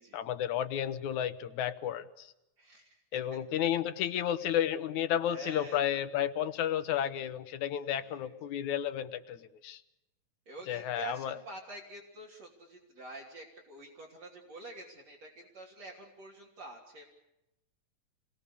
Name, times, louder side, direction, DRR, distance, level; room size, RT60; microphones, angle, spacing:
voice 1, 0.1-2.3 3.1-9.8 10.7-11.4, left 10 dB, 80° left, 12 dB, 2.6 m, -32 dB
voice 2, 2.6-3.0 5.3-6.0 8.0-8.3 10.5-17.0, right 3 dB, 60° right, 1 dB, 4.3 m, -47 dB
29.0 x 21.0 x 6.9 m, 0.92 s
omnidirectional pair, 3.3 m